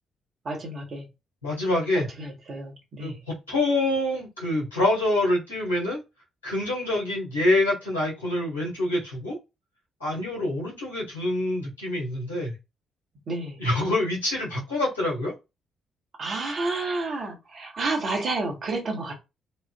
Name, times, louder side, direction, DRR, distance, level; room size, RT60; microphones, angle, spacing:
voice 1, 0.4-1.1 2.2-3.2 13.3-13.6 16.2-19.1, right 3 dB, 45° right, 1.2 m, -30 dB
voice 2, 1.4-2.1 3.0-6.0 6.4-9.4 10.0-12.5 13.6-15.3, left 1 dB, 85° left, 1.3 m, -26 dB
3.1 x 2.4 x 2.3 m
figure-of-eight pair, 40°, 0 cm